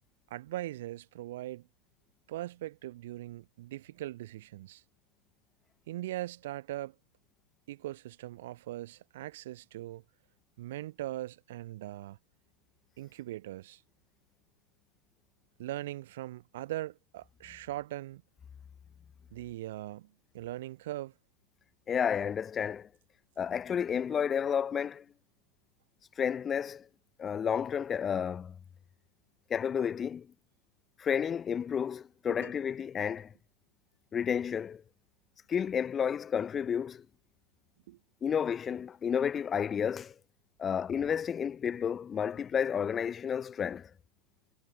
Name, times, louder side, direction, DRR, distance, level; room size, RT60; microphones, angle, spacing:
voice 1, 0.3-1.7 2.3-4.8 5.9-6.9 7.7-10.0 10.6-12.2 13.0-13.8 15.6-18.2 19.3-21.1 32.3-32.5 37.9-38.0, right 15 dB, 55° right, 4.4 m, -40 dB
voice 2, 21.9-22.9 23.4-25.0 26.2-26.9 27.2-28.6 29.5-30.3 31.0-33.3 34.1-34.8 35.5-37.0 38.2-40.1 40.6-43.9, left 7 dB, 20° left, 3.1 m, -31 dB
figure-of-eight pair, 90°, 0 cm